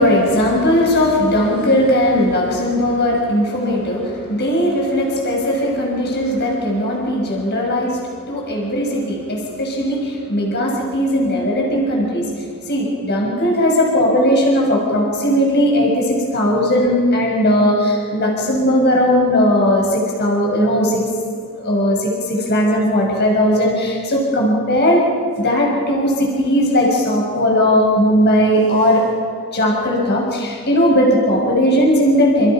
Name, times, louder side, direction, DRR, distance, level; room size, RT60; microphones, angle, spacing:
voice 1, 0.0-8.0 8.3-21.0 21.6-25.0 25.4-29.0 29.5-32.5, equal, 50° left, -1 dB, 6.2 m, -17 dB
29.5 x 29.0 x 6.0 m, 2.1 s
head